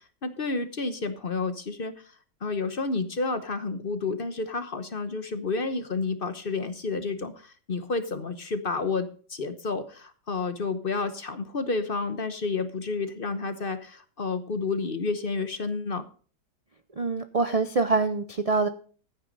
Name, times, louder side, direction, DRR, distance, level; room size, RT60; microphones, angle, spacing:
voice 1, 0.0-2.1 2.4-16.0, left 4 dB, 40° left, 10 dB, 1.0 m, -30 dB
voice 2, 17.0-18.7, right 4 dB, 55° right, 9 dB, 0.3 m, -25 dB
14.5 x 9.5 x 4.0 m, 0.41 s
omnidirectional pair, 1.8 m